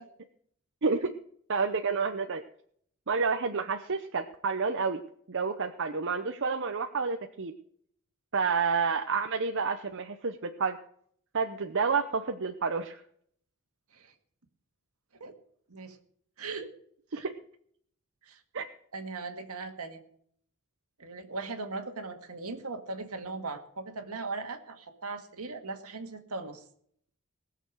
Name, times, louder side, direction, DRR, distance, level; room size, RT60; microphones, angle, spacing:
voice 1, 0.8-1.1 1.5-2.4 3.1-5.0 5.3-7.5 8.3-10.8 11.3-13.0 17.1-17.2 18.5-18.7, right 5 dB, 55° right, 6 dB, 0.8 m, -29 dB
voice 2, 16.4-16.7 17.1-17.3 18.2-18.4 18.9-20.0 21.0-26.6, right 3 dB, 75° right, 6 dB, 1.8 m, -39 dB
19.5 x 6.8 x 6.4 m, 0.65 s
head